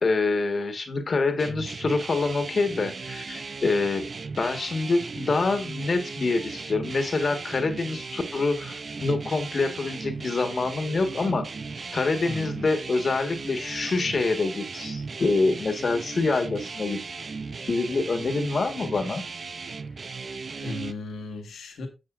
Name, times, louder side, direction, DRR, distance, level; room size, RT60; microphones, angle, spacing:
voice 1, 0.0-4.1 4.4-11.5 11.9-17.0 17.7-19.2, left 3 dB, 60° left, 1.6 m, -26 dB
sound 1, 1.4-20.9, right 4 dB, 60° right, 0.5 m, -37 dB
voice 2, 12.2-12.7 20.0-20.1 20.5-21.9, left 2 dB, 90° left, 1.6 m, -36 dB
10.0 x 7.4 x 2.5 m
cardioid pair, 45°, 0 cm